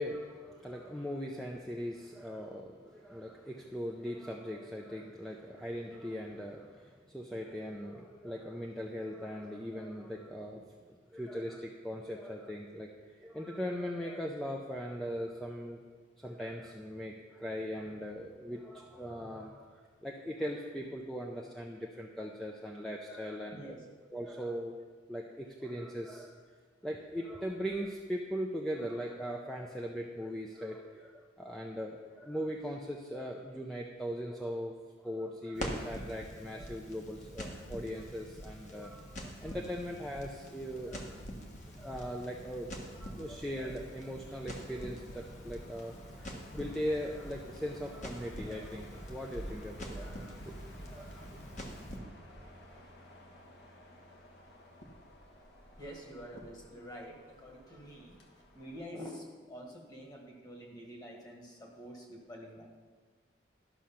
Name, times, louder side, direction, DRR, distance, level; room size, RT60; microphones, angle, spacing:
voice 1, 0.0-10.6 10.9-15.8 16.2-23.7 24.1-24.7 25.1-26.4 26.8-34.7 35.0-41.2 41.7-51.3, equal, ahead, -1 dB, 0.5 m, -40 dB
voice 2, 23.4-23.9 55.3-58.2 58.5-62.6, equal, 20° left, 0 dB, 1.6 m, -47 dB
Crackle, 35.5-52.0, equal, 40° left, 1.3 m, -45 dB
sound 1, 39.4-58.8, equal, 60° left, 1.4 m, -56 dB
12.0 x 6.3 x 5.7 m, 1.5 s
head